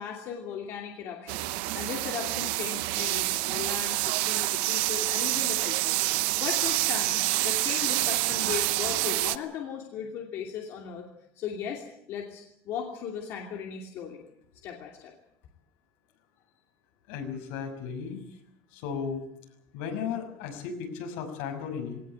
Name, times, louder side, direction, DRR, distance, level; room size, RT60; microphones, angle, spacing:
voice 1, 0.0-1.5 1.7-11.1 11.4-14.2 14.6-15.1, left 8 dB, 45° left, 1 dB, 2.7 m, -37 dB
sound 1, 1.3-9.4, right 19 dB, 75° right, 0.8 m, -27 dB
voice 2, 17.1-18.2 18.7-19.2 19.7-22.0, left 6 dB, 80° left, 5 dB, 6.2 m, -35 dB
20.5 x 18.5 x 8.8 m, 0.75 s
cardioid pair, 180°, 6 cm